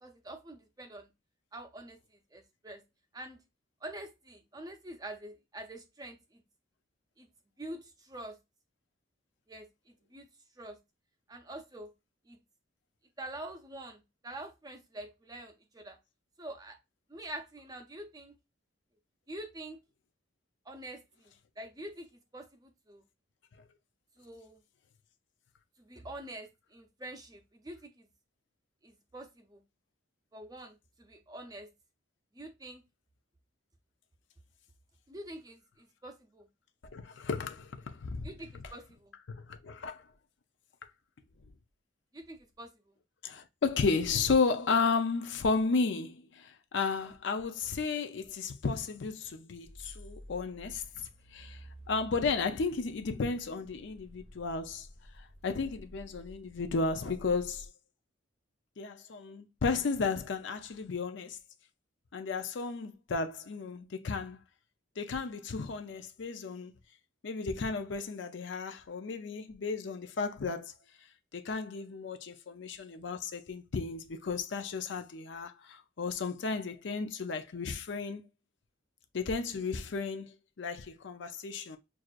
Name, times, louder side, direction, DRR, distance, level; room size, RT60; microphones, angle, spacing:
voice 1, 0.0-1.1 1.5-2.0 2.3-2.8 3.1-3.4 3.8-6.2 7.2-7.3 7.6-8.4 9.5-9.7 10.1-10.3 10.6-10.8 11.3-11.9 12.3-12.4 13.2-16.0 16.4-16.8 17.1-18.3 19.3-19.8 20.7-21.0 21.6-22.1 22.3-23.0 24.2-24.6 25.8-28.1 28.8-29.6 30.3-31.7 32.4-32.8 35.1-36.5 38.2-39.1 42.1-42.7, right 1 dB, 20° right, 0.5 m, -45 dB
voice 2, 36.9-38.6 39.3-40.0 43.2-54.9 55.2-57.7 58.8-61.4 62.1-64.4 65.0-66.7 67.2-70.7 71.3-78.2 79.1-81.8, left 4 dB, 60° left, 0.5 m, -33 dB
sound 1, 49.6-57.7, equal, 35° left, 1.4 m, -52 dB
6.1 x 2.5 x 2.4 m
head